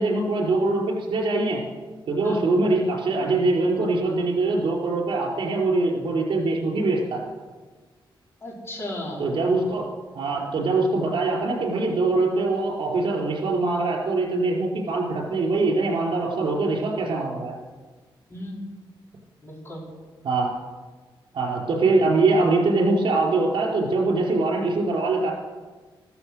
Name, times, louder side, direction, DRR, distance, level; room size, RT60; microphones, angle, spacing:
voice 1, 0.0-1.6 2.1-7.2 9.2-9.9 10.1-17.5 20.2-20.5 21.3-25.3, right 3 dB, 70° right, -1 dB, 4.6 m, -23 dB
voice 2, 2.2-2.6 8.4-9.3 18.3-18.6 19.4-19.8, left 1 dB, 30° left, -3 dB, 4.9 m, -35 dB
14.5 x 14.0 x 6.6 m, 1.4 s
wide cardioid pair, 170°, 9 cm